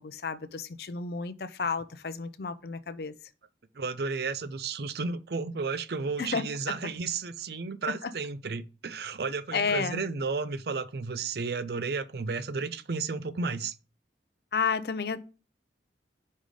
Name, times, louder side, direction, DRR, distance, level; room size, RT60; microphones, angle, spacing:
voice 1, 0.0-3.1 6.2-6.4 8.0-8.1 9.5-10.0 14.5-15.2, left 5 dB, 60° left, 0.5 m, -31 dB
voice 2, 3.7-13.8, right 4 dB, 60° right, 0.5 m, -33 dB
5.3 x 3.8 x 4.9 m
head